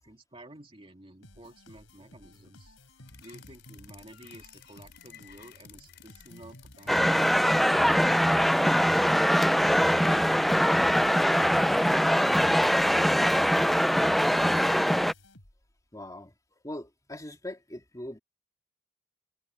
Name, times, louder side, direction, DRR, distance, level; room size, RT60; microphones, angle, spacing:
voice 1, 0.0-2.7 3.2-10.3, right 1 dB, 30° right, 2.5 m, -51 dB
sound 1, 1.2-15.8, left 1 dB, 80° left, 4.2 m, -54 dB
sound 2, 3.1-13.2, left 12 dB, 60° left, 4.9 m, -55 dB
sound 3, 6.9-15.1, equal, ahead, 0.3 m, -22 dB
voice 2, 15.9-18.2, left 1 dB, 20° left, 3.5 m, -41 dB
head